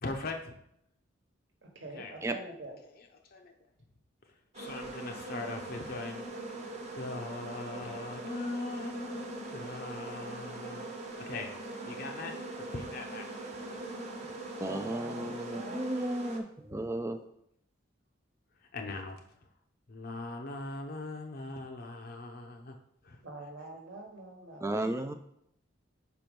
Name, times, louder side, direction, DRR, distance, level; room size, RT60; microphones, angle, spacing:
voice 1, 0.0-0.5 1.9-2.2 2.8-3.5 4.3-6.2 6.9-10.8 11.3-11.5 11.8-13.5 16.7-16.8 18.7-19.2 19.9-22.7 23.0-23.2, left 2 dB, 50° left, 3 dB, 0.6 m, -40 dB
voice 2, 1.6-2.8 14.6-16.0 23.2-24.8, right 2 dB, 65° right, 2 dB, 1.2 m, -45 dB
sound 1, 4.5-16.4, right 2 dB, 35° right, 0.9 m, -41 dB
voice 3, 14.6-17.2 24.6-25.1, right 1 dB, 15° right, 8 dB, 0.3 m, -34 dB
5.0 x 4.6 x 5.2 m, 0.73 s
head